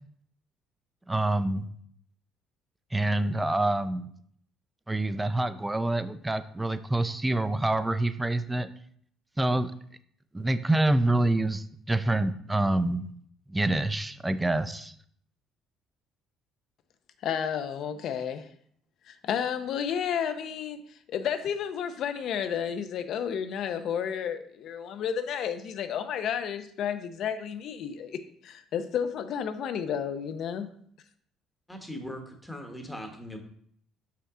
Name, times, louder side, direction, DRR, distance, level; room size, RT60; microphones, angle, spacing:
voice 1, 1.1-1.7 2.9-4.1 4.9-8.7 9.4-9.7 10.3-13.1 13.5-14.9, right 2 dB, 10° right, 12 dB, 0.4 m, -26 dB
voice 2, 17.2-18.5 19.1-30.7, left 8 dB, 60° left, 10 dB, 0.6 m, -32 dB
voice 3, 31.7-33.4, equal, 5° left, 3 dB, 1.2 m, -40 dB
5.9 x 5.7 x 3.7 m, 0.63 s
cardioid pair, 115°, 0 cm